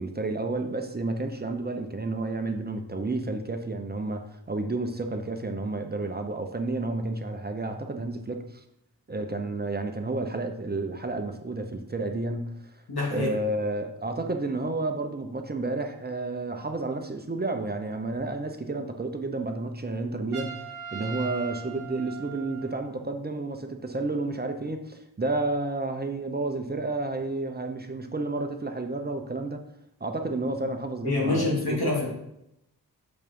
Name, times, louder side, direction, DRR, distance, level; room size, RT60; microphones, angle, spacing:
voice 1, 0.0-8.6 9.1-12.7 13.1-20.7 20.9-29.6 30.0-31.9, right 2 dB, 25° right, 5 dB, 0.7 m, -31 dB
voice 2, 12.9-13.3 31.0-32.1, left 3 dB, 90° left, -4 dB, 2.9 m, -26 dB
Trumpet, 20.3-23.0, right 7 dB, 60° right, 1.2 m, -40 dB
7.0 x 5.4 x 5.4 m, 0.83 s
wide cardioid pair, 150°, 37 cm